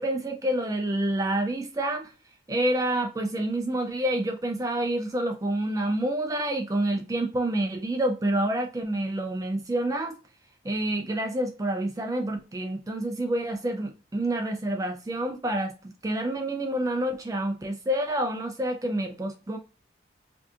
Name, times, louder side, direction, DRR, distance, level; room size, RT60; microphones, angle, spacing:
voice 1, 0.0-2.1 2.5-10.2 10.6-15.7 16.0-19.6, right 1 dB, 20° right, 0.4 m, -28 dB
4.8 x 2.7 x 2.3 m
head